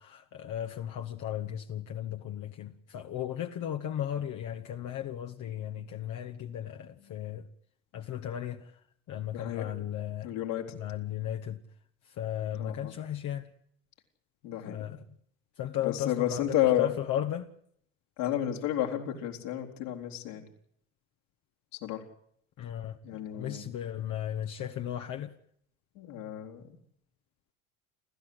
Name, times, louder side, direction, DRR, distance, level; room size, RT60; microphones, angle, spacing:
voice 1, 0.0-7.4 7.9-8.8 9.1-10.3 10.7-11.6 12.1-13.5 14.7-15.0 15.6-17.5 22.6-25.3, left 11 dB, 50° left, 1.5 m, -35 dB
voice 2, 9.3-9.7 10.2-10.6 12.5-12.9 14.4-14.9 15.8-16.9 18.2-20.4 21.8-22.0 23.0-23.6 26.0-26.6, left 12 dB, 70° left, 4.2 m, -31 dB
30.0 x 13.5 x 8.0 m
hypercardioid pair, 70°, 38 cm